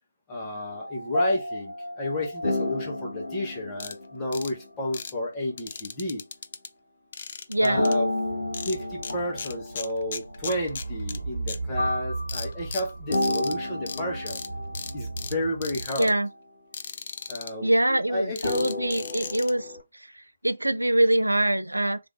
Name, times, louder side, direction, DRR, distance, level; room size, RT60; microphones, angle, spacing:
voice 1, 0.3-6.2 7.6-8.1 8.6-14.4 14.9-16.1 17.3-18.7, left 1 dB, 15° left, 0.9 m, -31 dB
sound 1, 0.7-4.9 7.8-11.4 11.8-15.4 15.8-16.1 18.4-19.8, left 1 dB, 65° left, 1.1 m, -31 dB
sound 2, 3.8-3.9 4.3-4.5 4.9-5.1 5.6-6.7 7.1-7.9 8.5-9.1 9.4-11.2 11.5-11.6 12.3-13.5 13.9-14.0 14.3-14.5 14.7-15.3 15.6-16.1 16.7-17.5 18.4-19.5, left 6 dB, 35° left, 0.3 m, -37 dB
voice 2, 7.5-7.9 16.0-16.3 17.6-19.7 20.4-22.0, right 1 dB, 80° right, 0.4 m, -23 dB
sound 3, 8.2-15.9, right 3 dB, 45° right, 1.3 m, -37 dB
3.4 x 2.5 x 3.1 m
figure-of-eight pair, 150°, 0 cm